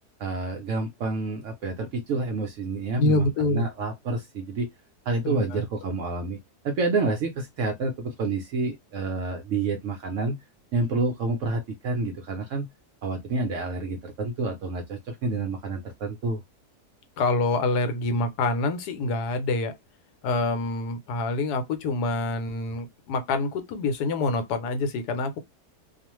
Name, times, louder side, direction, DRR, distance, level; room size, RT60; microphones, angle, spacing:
voice 1, 0.2-4.7 5.1-6.4 6.6-10.4 10.7-12.7 13.0-16.4, right 3 dB, 70° right, 0.7 m, -28 dB
voice 2, 3.0-3.7 5.2-5.6 17.2-19.7 20.2-25.4, left 2 dB, 80° left, 1.2 m, -26 dB
2.4 x 2.4 x 2.9 m
omnidirectional pair, 1.7 m